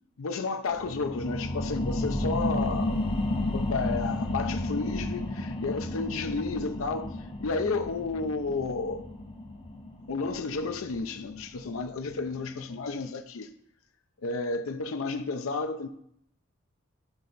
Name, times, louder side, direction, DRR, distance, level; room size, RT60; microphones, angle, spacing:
voice 1, 0.2-3.0 3.5-9.1 10.1-13.5 14.2-15.9, left 4 dB, 85° left, 0.5 m, -32 dB
sound 1, 0.7-11.8 12.3-12.4, left 1 dB, 25° left, 0.8 m, -32 dB
11.0 x 4.2 x 4.0 m
head